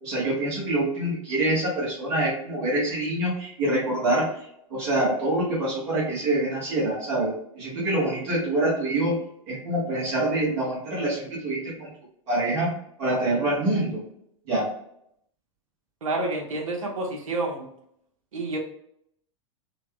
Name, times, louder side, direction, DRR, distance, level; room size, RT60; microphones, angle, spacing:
voice 1, 0.0-4.3 4.7-11.9 12.3-12.7 13.0-14.0 14.5-14.7, right 1 dB, 55° right, -6 dB, 1.4 m, -25 dB
voice 2, 16.0-17.7 18.3-18.6, right 2 dB, 80° right, 1 dB, 1.0 m, -29 dB
4.0 x 2.3 x 2.2 m, 0.72 s
hypercardioid pair, 105°, 17 cm